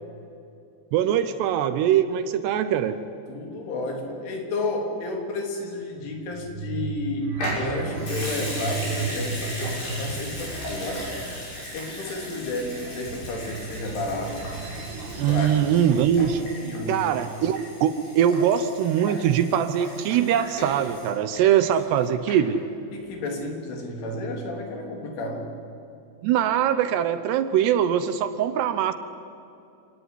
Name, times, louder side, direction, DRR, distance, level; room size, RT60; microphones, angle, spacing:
voice 1, 0.9-3.0 15.2-16.5 16.9-22.6 26.2-28.9, right 9 dB, 75° right, 11 dB, 2.8 m, -22 dB
voice 2, 3.3-11.1 11.7-14.5 15.3-15.6 16.6-17.2 22.9-25.5, left 2 dB, 85° left, 2 dB, 5.8 m, -32 dB
sound 1, 6.0-16.5, right 4 dB, 45° right, 5.6 m, -35 dB
Water tap faucet / Sink (filling or washing) / Liquid, 7.3-22.0 22.3-22.4, equal, 60° left, 8.4 m, -37 dB
27.5 x 18.0 x 9.9 m, 2.6 s
omnidirectional pair, 5.4 m